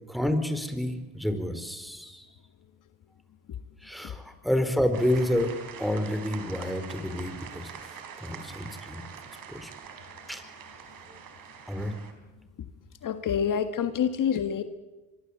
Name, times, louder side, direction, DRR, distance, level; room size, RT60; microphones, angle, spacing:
voice 1, 0.1-2.3 3.8-5.5 5.8-9.0 9.5-9.7 10.3-10.4 11.7-11.9, left 1 dB, ahead, 8 dB, 4.8 m, -29 dB
sound 1, 4.9-12.1, right 7 dB, 60° right, 4.5 m, -44 dB
voice 2, 13.0-14.6, left 8 dB, 55° left, 9 dB, 1.7 m, -27 dB
24.5 x 23.5 x 8.7 m, 1.1 s
supercardioid pair, 70°, 38 cm